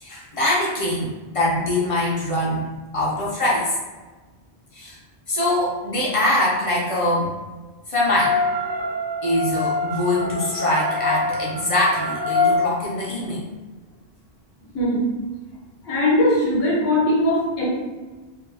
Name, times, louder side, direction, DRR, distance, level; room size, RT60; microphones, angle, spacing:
voice 1, 0.0-3.7 4.7-5.0 5.3-7.3 7.9-8.4 9.2-13.4, left 1 dB, 40° left, -5 dB, 0.5 m, -23 dB
sound 1, 8.1-12.6, left 3 dB, 25° right, 0.6 m, -25 dB
voice 2, 15.8-17.6, left 1 dB, 70° left, -4 dB, 1.0 m, -20 dB
2.9 x 2.3 x 2.5 m, 1.3 s
omnidirectional pair, 1.1 m